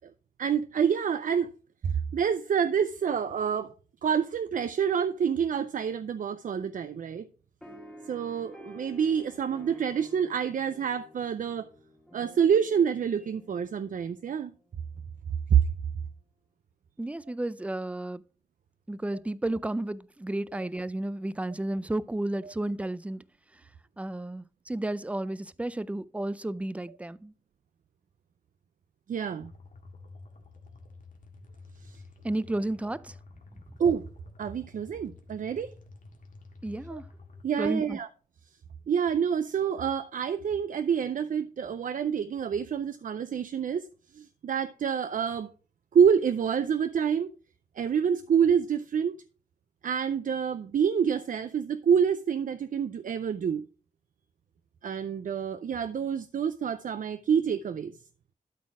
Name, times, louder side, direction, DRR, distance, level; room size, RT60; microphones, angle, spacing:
voice 1, 0.4-1.5 1.8-3.7 4.0-7.3 8.1-11.7 12.1-14.5 15.5-15.7 29.1-29.5 31.8-32.0 33.8-34.1 34.4-35.7 36.9-37.0 37.4-38.1 38.9-45.5 45.9-47.3 47.8-49.2 49.8-53.6 54.8-58.0, right 7 dB, 75° right, 0.5 m, -27 dB
sound 1, 7.6-14.5, left 1 dB, 5° left, 1.5 m, -51 dB
voice 2, 17.0-18.2 18.9-23.2 24.0-27.3 32.2-33.2 36.6-37.0 37.6-38.0, right 1 dB, 10° right, 0.4 m, -32 dB
sound 2, 29.4-37.4, left 3 dB, 75° left, 1.7 m, -50 dB
12.5 x 4.1 x 4.8 m
wide cardioid pair, 130°, 14 cm